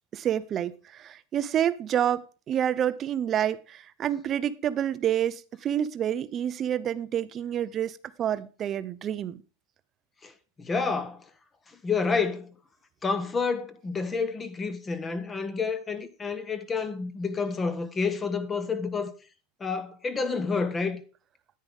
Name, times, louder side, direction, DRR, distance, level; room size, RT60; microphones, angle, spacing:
voice 1, 0.1-9.4, right 10 dB, 30° right, 0.6 m, -28 dB
voice 2, 10.6-11.2 11.8-12.5 13.0-19.1 19.6-21.0, left 4 dB, 15° left, 1.1 m, -29 dB
9.9 x 9.6 x 3.5 m
supercardioid pair, 145°, 0 cm